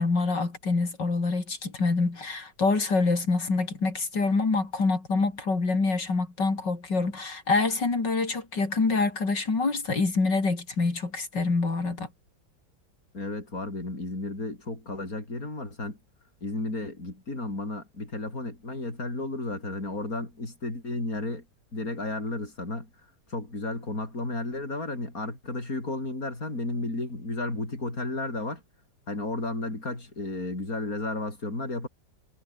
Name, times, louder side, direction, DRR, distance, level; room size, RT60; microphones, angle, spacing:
voice 1, 0.0-12.1, left 3 dB, 70° left, 5.0 m, -26 dB
voice 2, 13.1-16.0 16.4-21.5 21.7-22.9 23.3-28.6 29.1-31.9, left 2 dB, 50° left, 7.1 m, -33 dB
omnidirectional pair, 1.9 m